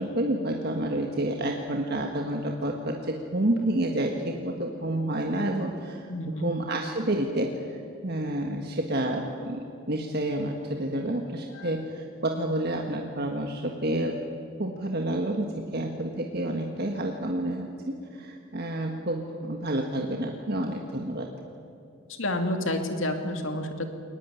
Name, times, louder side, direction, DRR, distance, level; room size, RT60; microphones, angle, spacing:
voice 1, 0.0-14.2 14.6-21.3, right 1 dB, 45° right, 2 dB, 1.6 m, -29 dB
voice 2, 6.1-6.5 11.5-11.7 22.1-23.9, left 1 dB, 65° left, 5 dB, 2.5 m, -30 dB
22.0 x 19.5 x 9.8 m, 2.5 s
head